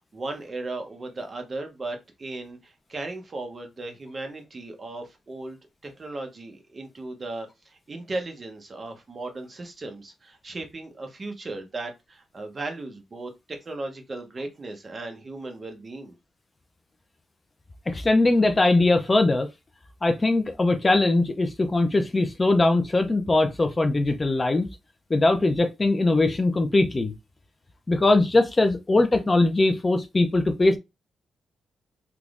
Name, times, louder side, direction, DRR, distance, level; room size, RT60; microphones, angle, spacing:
voice 1, 0.1-16.1, right 2 dB, 30° right, 0.8 m, -36 dB
voice 2, 17.9-19.5 20.0-24.7 25.1-27.1 27.9-30.8, left 2 dB, 25° left, 0.5 m, -21 dB
3.4 x 3.0 x 2.4 m
cardioid pair, 125°, 0 cm